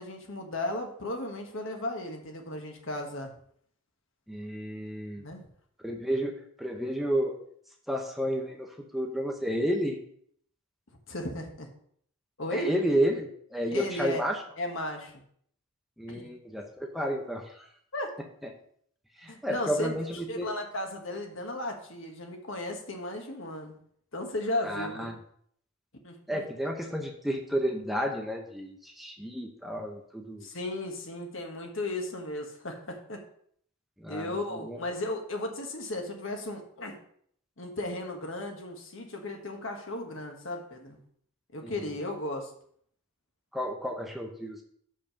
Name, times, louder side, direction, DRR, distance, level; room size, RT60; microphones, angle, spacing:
voice 1, 0.0-3.3 5.2-5.4 11.1-11.7 12.4-12.7 13.7-14.2 14.6-15.1 16.1-16.3 17.9-18.1 19.3-19.9 20.3-23.7 24.1-25.1 26.0-26.4 30.4-33.2 34.1-37.0 37.6-41.0 41.5-42.5, left 1 dB, 60° left, 3 dB, 1.4 m, -35 dB
voice 2, 4.3-5.2 5.8-7.3 7.9-10.0 12.5-14.4 16.0-17.7 19.2-20.5 24.6-25.2 26.3-30.5 34.0-34.3 34.6-34.8 41.6-41.7 43.5-44.6, equal, ahead, 1 dB, 0.7 m, -31 dB
6.9 x 5.4 x 5.8 m, 0.64 s
head